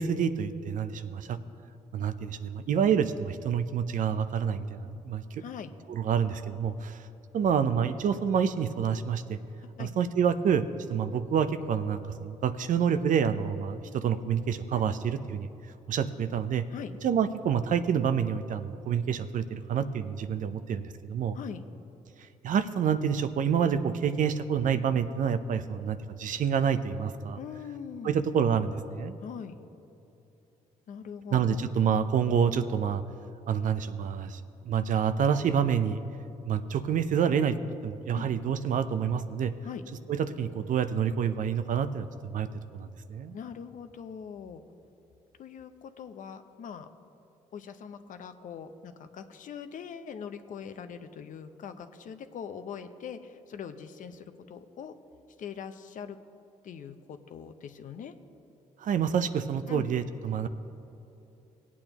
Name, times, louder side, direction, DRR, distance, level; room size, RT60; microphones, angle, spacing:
voice 1, 0.0-1.4 1.9-5.4 5.9-7.0 7.3-9.4 9.8-15.5 15.9-16.6 17.0-21.4 22.4-27.4 28.0-29.1 31.3-33.0 33.5-36.0 36.4-37.6 37.8-39.5 40.1-42.5 42.7-43.4 58.8-60.5, right 7 dB, 65° right, 12 dB, 0.6 m, -28 dB
voice 2, 9.6-9.9 14.7-14.9 16.7-16.9 21.3-21.6 27.4-28.2 29.2-29.6 30.9-31.7 38.1-38.3 39.6-39.8 43.3-44.6 45.4-46.9 47.5-54.9 55.4-56.2 56.6-58.1 59.7-59.9, left 7 dB, 65° left, 9 dB, 0.7 m, -42 dB
18.0 x 8.5 x 3.0 m, 2.9 s
supercardioid pair, 60°, 14 cm